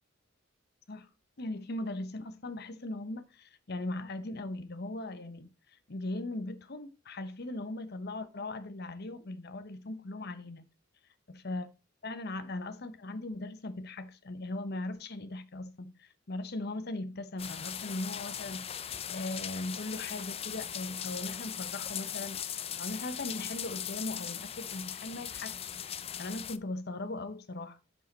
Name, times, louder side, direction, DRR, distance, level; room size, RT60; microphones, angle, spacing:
voice 1, 1.4-10.7 11.4-11.7 12.0-22.4 22.8-27.8, left 2 dB, 50° left, 0.9 m, -39 dB
sound 1, 17.4-26.6, left 9 dB, 30° left, 0.4 m, -39 dB
9.6 x 5.6 x 4.1 m
head